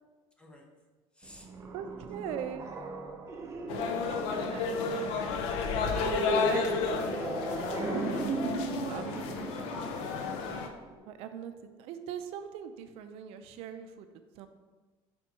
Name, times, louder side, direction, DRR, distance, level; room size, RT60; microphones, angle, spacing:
voice 1, 1.1-1.5 2.3-3.3 8.9-9.4 9.8-10.4, equal, 10° left, 1 dB, 0.7 m, -52 dB
sound 1, 1.2-11.0, right 2 dB, 25° right, 0.6 m, -37 dB
voice 2, 1.7-2.7 3.7-3.8 4.1-5.4 6.1-7.8 8.8-9.8 11.1-14.1 14.4-14.5, right 8 dB, 70° right, 8 dB, 0.4 m, -41 dB
sound 2, 3.7-10.7, left 5 dB, 80° left, 0.6 m, -32 dB
5.1 x 4.3 x 4.6 m, 1.3 s
cardioid pair, 150°, 11 cm